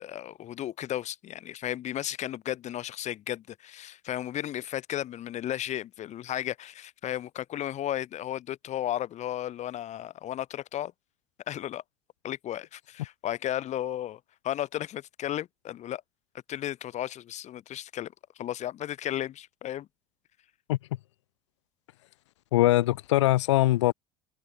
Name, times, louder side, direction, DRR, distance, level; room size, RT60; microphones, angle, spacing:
voice 1, 0.0-10.9 11.5-11.8 12.2-16.0 16.5-19.9, left 12 dB, 50° left, 7.1 m, -34 dB
voice 2, 22.5-23.9, left 16 dB, 75° left, 1.2 m, -22 dB
figure-of-eight pair, 65°, 15 cm